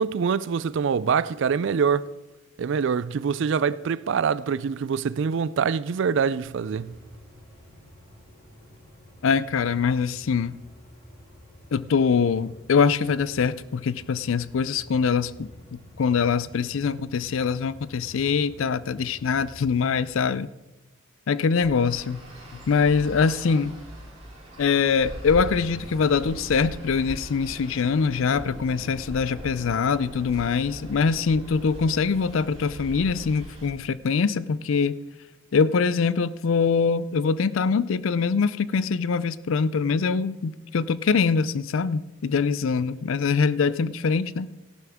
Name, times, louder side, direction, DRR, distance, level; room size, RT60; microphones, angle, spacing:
voice 1, 0.0-2.1 2.6-7.0, right 6 dB, 60° right, 0.3 m, -24 dB
sound 1, 6.4-20.1, left 1 dB, 20° left, 4.8 m, -49 dB
voice 2, 9.2-10.6 11.7-20.5 21.3-22.2 22.5-23.7 24.6-35.0 35.5-44.5, left 5 dB, 70° left, 0.4 m, -23 dB
Traffic noise roadway noise, 21.6-33.7, equal, 30° right, 5.3 m, -40 dB
14.5 x 11.5 x 3.5 m
head